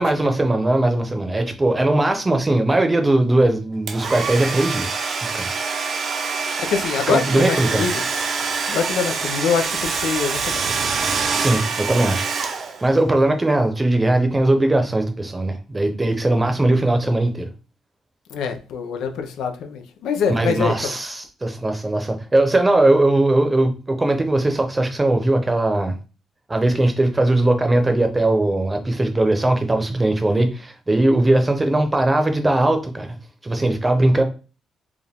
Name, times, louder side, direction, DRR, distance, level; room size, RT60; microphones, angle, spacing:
voice 1, 0.0-5.5 7.1-7.9 11.4-17.5 20.3-26.0 26.5-33.2 33.4-34.2, right 2 dB, 20° right, 0.8 m, -19 dB
Domestic sounds home sounds, 3.9-13.0, right 5 dB, 55° right, 0.7 m, -25 dB
voice 2, 6.6-7.9 8.7-10.7 18.3-20.9, left 6 dB, 85° left, 0.7 m, -24 dB
4.8 x 2.5 x 3.5 m
cardioid pair, 90°, 0 cm